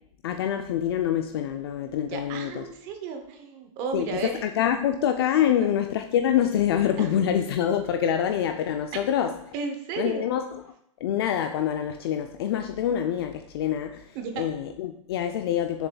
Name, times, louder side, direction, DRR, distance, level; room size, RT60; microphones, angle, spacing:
voice 1, 0.2-2.7 3.9-9.3 10.0-10.6 11.0-15.9, left 10 dB, 45° left, 6 dB, 0.4 m, -26 dB
voice 2, 2.1-4.4 5.5-5.7 7.0-7.1 8.9-9.0 9.5-10.3 14.1-14.5, right 5 dB, 30° right, 5 dB, 0.7 m, -33 dB
7.0 x 6.8 x 2.3 m, 0.74 s
hypercardioid pair, 155°, 18 cm